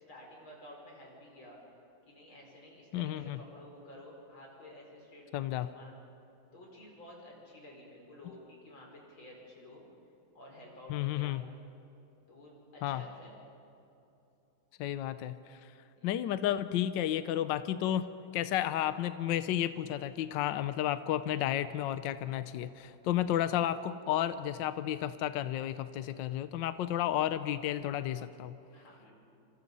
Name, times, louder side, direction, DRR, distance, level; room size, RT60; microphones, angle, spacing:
voice 1, 0.1-1.6 2.0-5.9 6.5-9.9 10.3-11.4 12.3-13.4 16.0-16.1 28.7-29.1, left 1 dB, 90° left, -1 dB, 6.1 m, -52 dB
voice 2, 2.9-3.4 5.3-5.7 10.9-11.4 12.8-13.0 14.8-15.4 16.0-18.0 18.3-28.5, left 12 dB, 70° left, 12 dB, 1.4 m, -32 dB
27.5 x 27.0 x 5.5 m, 2.8 s
omnidirectional pair, 2.1 m